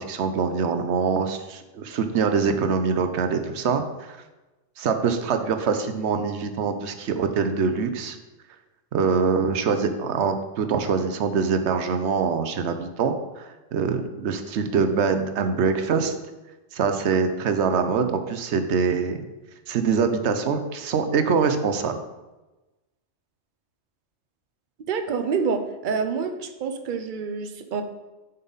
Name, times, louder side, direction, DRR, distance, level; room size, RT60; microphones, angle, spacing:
voice 1, 0.1-4.2 4.8-8.2 8.9-16.1 16.7-19.2 19.7-22.0, right 5 dB, 75° right, 8 dB, 1.0 m, -24 dB
voice 2, 24.9-27.8, right 5 dB, 50° right, 7 dB, 0.7 m, -27 dB
7.3 x 5.6 x 4.0 m, 1.1 s
omnidirectional pair, 1.2 m